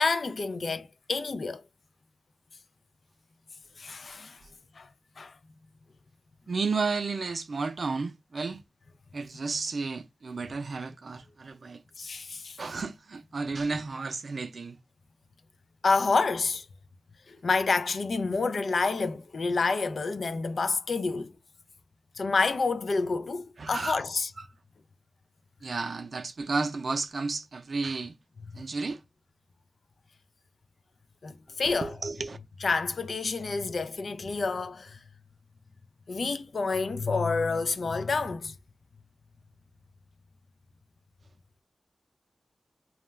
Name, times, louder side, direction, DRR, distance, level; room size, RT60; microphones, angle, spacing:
voice 1, 0.0-1.6 3.8-4.4 4.8-4.9 5.2-5.3 12.0-12.6 15.8-16.7 17.3-21.3 22.2-24.3 28.5-28.6 31.2-31.9 32.6-35.0 36.1-38.5, left 4 dB, 75° left, 0.3 m, -28 dB
voice 2, 6.5-8.6 9.1-11.8 12.6-14.8 23.6-24.0 24.4-24.5 25.6-28.1 28.5-29.0 31.6-32.4, right 4 dB, 70° right, 0.4 m, -32 dB
2.3 x 2.1 x 3.0 m
wide cardioid pair, 65°, 0 cm